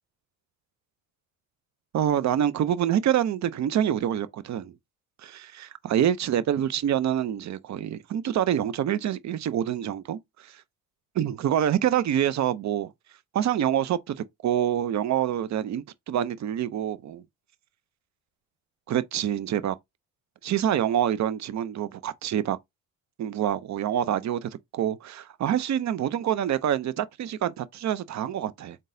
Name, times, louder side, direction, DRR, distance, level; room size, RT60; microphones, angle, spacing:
voice 1, 1.9-4.7 5.2-10.6 11.2-12.9 13.3-17.2 18.9-19.7 20.4-22.6 23.2-28.8, right 10 dB, 45° right, 0.6 m, -26 dB
3.8 x 3.7 x 2.6 m
supercardioid pair, 75°, 38 cm